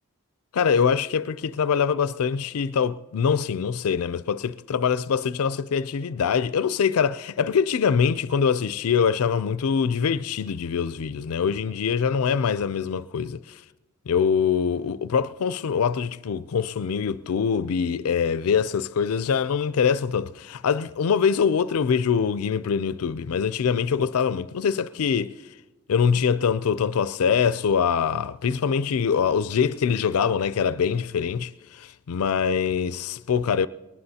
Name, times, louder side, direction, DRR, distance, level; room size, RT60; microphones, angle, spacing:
voice 1, 0.5-13.6 14.1-25.3 25.9-33.7, left 6 dB, 75° left, 0.4 m, -24 dB
21.0 x 19.5 x 2.8 m
head